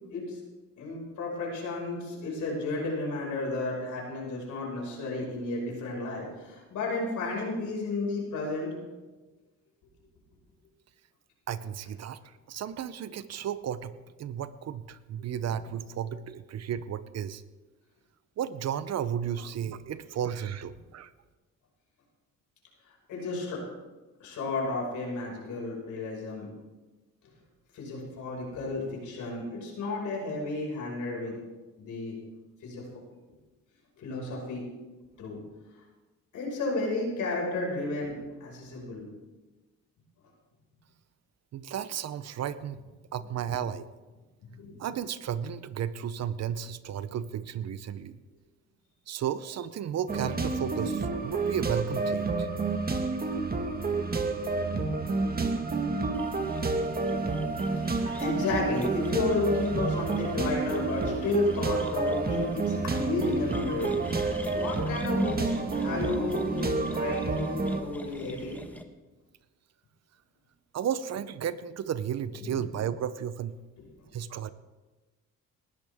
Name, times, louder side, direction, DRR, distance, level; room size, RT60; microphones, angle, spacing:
voice 1, 0.8-8.8 15.3-15.5 23.1-23.6 24.2-26.5 27.7-31.4 31.8-32.1 32.6-32.8 34.0-34.7 35.2-35.4 36.3-39.1 44.4-44.8 57.7-68.6 72.4-72.6 73.8-74.0, left 3 dB, 75° left, -2 dB, 5.7 m, -33 dB
voice 2, 11.5-12.2 12.5-17.4 18.4-21.1 41.5-42.8 43.1-43.9 44.8-48.2 49.1-52.5 70.7-73.6 74.1-74.5, right 9 dB, 60° right, 14 dB, 0.8 m, -33 dB
sound 1, 50.1-67.8, right 3 dB, 30° right, 1.6 m, -29 dB
sound 2, 56.1-68.8, left 1 dB, 5° left, 1.2 m, -44 dB
19.0 x 13.5 x 3.6 m, 1.2 s
cardioid pair, 90°, 30 cm